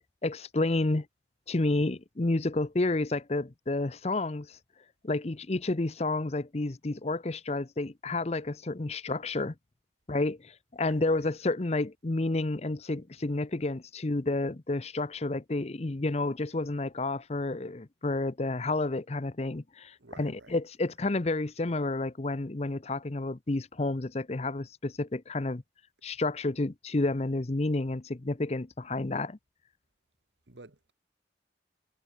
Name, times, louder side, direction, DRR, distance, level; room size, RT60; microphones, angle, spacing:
voice 1, 0.2-1.1 1.5-4.6 5.0-9.5 10.1-25.6 26.0-29.4, left 2 dB, 35° left, 0.7 m, -30 dB
voice 2, 10.8-11.3 20.0-20.6 30.5-30.9, right 2 dB, 90° right, 1.9 m, -51 dB
head